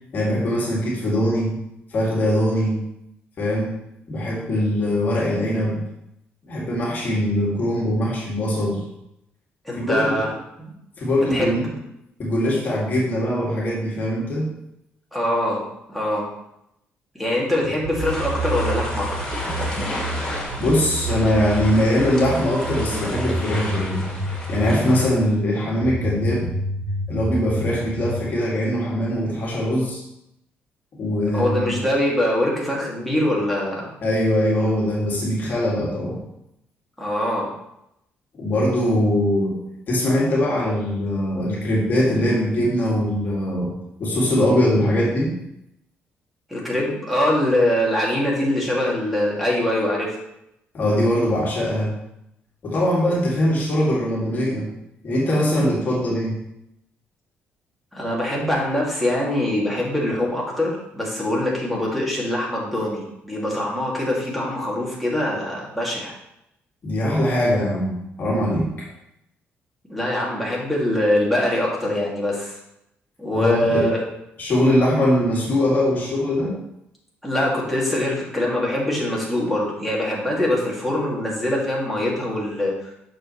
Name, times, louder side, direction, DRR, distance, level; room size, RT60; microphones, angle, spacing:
voice 1, 0.1-1.5 1.9-2.8 3.4-3.7 4.1-5.8 6.5-8.8 9.8-10.3 11.0-11.6 12.2-14.5 20.6-24.0 24.5-26.5 27.1-30.0 31.0-31.8 34.0-36.2 38.4-39.5 39.9-43.7 44.0-45.3 50.7-51.9 52.6-54.7 55.0-56.4 66.8-68.9 73.3-73.8 74.4-76.5, left 1 dB, 45° left, -4 dB, 2.3 m, -21 dB
voice 2, 9.7-10.3 10.6-10.7 11.3-11.6 15.1-15.6 15.9-16.2 17.2-19.4 31.3-33.9 37.0-37.5 46.5-50.2 57.9-66.1 69.9-72.6 73.2-74.0 77.2-82.7, left 1 dB, ahead, -5 dB, 2.4 m, -23 dB
sound 1, 17.8-25.1 25.8-28.3, right 1 dB, 80° right, 1.7 m, -28 dB
sound 2, 18.0-25.0, left 1 dB, 15° left, 2.5 m, -32 dB
8.8 x 6.5 x 3.2 m, 0.82 s
cardioid pair, 125°, 4 cm